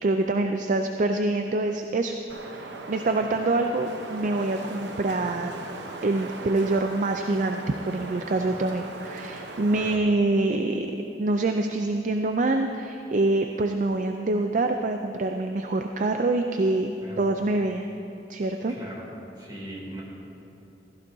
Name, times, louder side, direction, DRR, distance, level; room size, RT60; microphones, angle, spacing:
voice 1, 0.0-2.2 2.5-5.6 6.0-7.6 7.9-10.9 11.2-17.9 18.3-18.7, right 2 dB, 45° right, 5 dB, 0.4 m, -25 dB
Wind, 2.3-10.0, right 2 dB, 70° right, 0.8 m, -39 dB
voice 2, 18.7-19.0 19.4-20.0, right 1 dB, 25° right, -5 dB, 2.7 m, -40 dB
16.0 x 14.5 x 2.7 m, 2.9 s
head